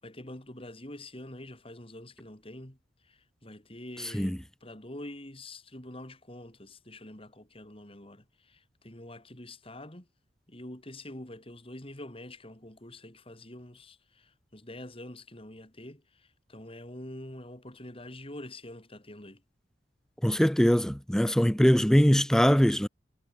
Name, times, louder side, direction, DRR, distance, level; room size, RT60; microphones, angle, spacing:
voice 1, 0.0-10.1 10.5-19.4, left 1 dB, 30° left, 3.9 m, -46 dB
voice 2, 20.2-22.9, equal, 5° left, 0.6 m, -22 dB
head